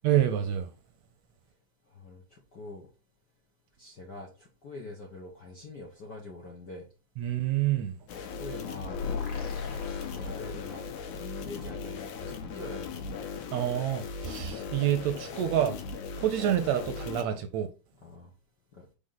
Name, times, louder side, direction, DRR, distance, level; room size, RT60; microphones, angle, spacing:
voice 1, 0.0-0.7 7.2-7.9 13.5-15.8 16.2-17.7, right 11 dB, 75° right, 1.7 m, -27 dB
voice 2, 1.9-2.9 3.8-6.9 8.2-9.0 9.8-13.2 18.0-18.3 18.7-18.9, left 2 dB, 60° left, 1.1 m, -44 dB
sound 1, 8.1-17.2, left 5 dB, 75° left, 2.3 m, -38 dB
sound 2, 8.9-11.0, left 5 dB, 45° left, 2.3 m, -36 dB
5.1 x 3.9 x 5.6 m
omnidirectional pair, 3.6 m